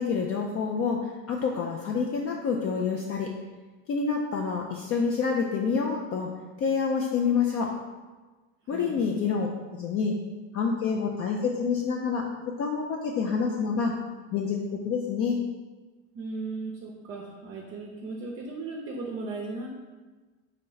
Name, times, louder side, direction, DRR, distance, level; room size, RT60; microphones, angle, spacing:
voice 1, 0.0-3.3 3.9-6.3 6.6-7.7 8.7-10.1 10.5-12.2 12.6-13.9 14.3-15.4, left 5 dB, 40° left, 0 dB, 0.4 m, -27 dB
voice 2, 16.1-19.7, right 3 dB, 35° right, -1 dB, 0.6 m, -36 dB
3.9 x 3.3 x 3.8 m, 1.3 s
cardioid pair, 130°, 37 cm